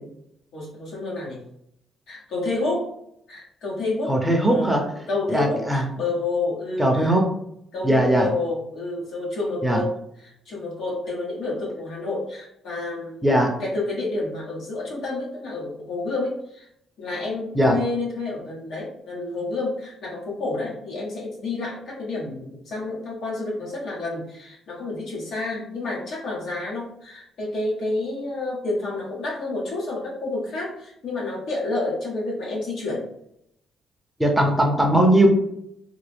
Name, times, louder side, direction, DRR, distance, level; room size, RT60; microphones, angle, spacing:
voice 1, 0.5-1.4 2.1-2.9 3.3-4.8 5.1-7.1 7.7-13.3 13.6-16.7 17.0-33.0, left 2 dB, 70° left, -4 dB, 1.4 m, -29 dB
voice 2, 4.1-4.8 5.3-5.8 6.8-7.2 7.8-8.3 9.6-9.8 13.2-13.5 17.5-17.8 34.2-35.3, right 1 dB, 5° right, 1 dB, 0.7 m, -19 dB
3.5 x 2.1 x 3.4 m, 0.75 s
cardioid pair, 90°, 0 cm